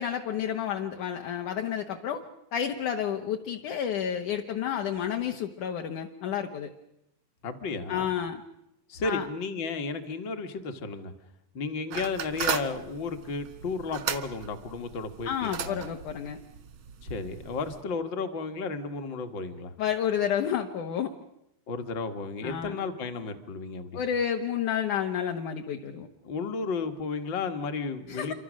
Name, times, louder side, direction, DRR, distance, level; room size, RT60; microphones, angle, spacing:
voice 1, 0.0-2.2 2.5-6.7 7.9-8.4 9.0-9.2 15.3-16.4 19.8-21.1 22.4-22.8 23.9-26.1 28.1-28.3, left 9 dB, 65° left, 3 dB, 2.4 m, -30 dB
voice 2, 7.4-8.1 8.9-11.1 11.5-15.8 17.0-19.7 21.7-24.0 26.2-28.3, left 4 dB, 45° left, 7 dB, 1.5 m, -33 dB
sound 1, 11.9-17.8, right 7 dB, 65° right, 1.2 m, -36 dB
28.0 x 25.0 x 6.4 m, 0.82 s
omnidirectional pair, 4.2 m